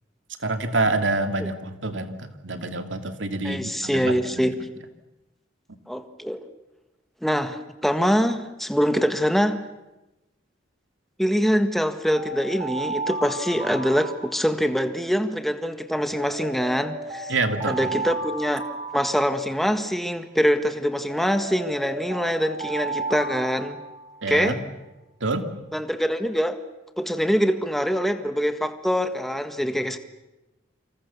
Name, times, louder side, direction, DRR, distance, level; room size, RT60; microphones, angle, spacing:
voice 1, 0.4-4.5 17.3-17.9 24.2-24.6 25.2-25.5, right 2 dB, 80° right, 7 dB, 2.6 m, -27 dB
voice 2, 3.4-4.6 5.9-6.4 7.2-9.6 11.2-17.3 17.7-18.6 18.9-23.8 24.3-24.6 25.7-26.6 27.0-30.0, equal, ahead, 8 dB, 1.6 m, -24 dB
Alarm, 12.1-14.8 16.1-19.8 21.1-24.3, right 2 dB, 30° right, 4.8 m, -34 dB
28.5 x 26.0 x 7.1 m, 1.0 s
head